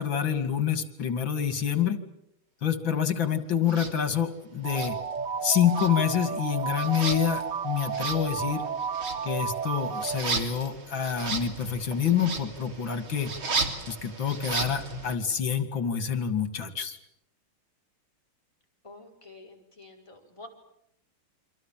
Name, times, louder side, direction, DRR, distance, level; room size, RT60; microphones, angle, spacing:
voice 1, 0.0-2.0 2.6-5.0 5.4-8.7 9.2-13.3 13.9-17.0, left 8 dB, 70° left, 10 dB, 3.1 m, -27 dB
sound 1, 3.7-3.9 4.7-5.4 5.7-15.1, right 4 dB, 80° right, 3.8 m, -35 dB
sound 2, 4.6-10.2, right 6 dB, 60° right, 2.5 m, -32 dB
voice 2, 18.8-20.5, left 2 dB, 15° left, 0 dB, 5.2 m, -48 dB
29.0 x 25.5 x 7.5 m, 0.77 s
omnidirectional pair, 2.2 m